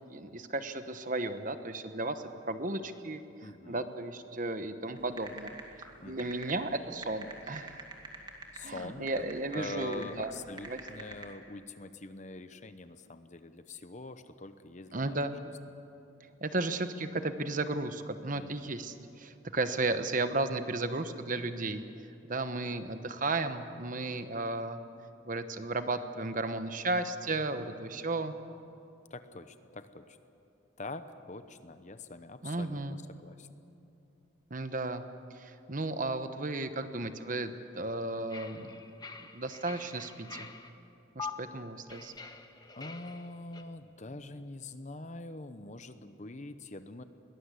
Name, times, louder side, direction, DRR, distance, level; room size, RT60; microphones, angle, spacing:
voice 1, 0.1-5.5 6.0-7.8 8.6-10.3 10.7-10.8 14.9-15.4 16.4-21.8 22.3-24.8 25.3-28.3 32.4-33.0 34.5-35.0 35.3-38.8 39.3-40.5 41.1-42.1, right 2 dB, 40° right, 9 dB, 1.0 m, -34 dB
voice 2, 3.4-3.9 6.0-6.4 8.5-9.2 9.5-15.2 18.3-18.8 29.1-30.2 30.8-33.5 42.8-47.0, left 2 dB, 35° left, 11 dB, 0.9 m, -44 dB
sound 1, 5.0-11.3, right 3 dB, 20° right, 2.3 m, -45 dB
sound 2, 38.3-40.7 41.2-41.3 41.9-43.6, left 5 dB, 20° left, 1.0 m, -45 dB
22.0 x 19.0 x 8.3 m, 2.8 s
head